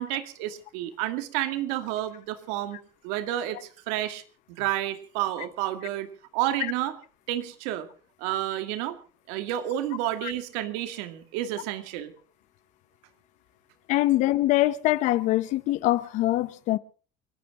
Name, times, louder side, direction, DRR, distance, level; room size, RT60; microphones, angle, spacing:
voice 1, 0.0-2.8 3.0-4.2 4.6-6.1 6.3-7.0 7.3-7.9 8.2-9.0 9.3-12.1, right 13 dB, 85° right, 2.2 m, -30 dB
voice 2, 13.9-16.8, left 16 dB, 55° left, 0.9 m, -23 dB
29.0 x 11.5 x 3.7 m
cardioid pair, 160°, 15 cm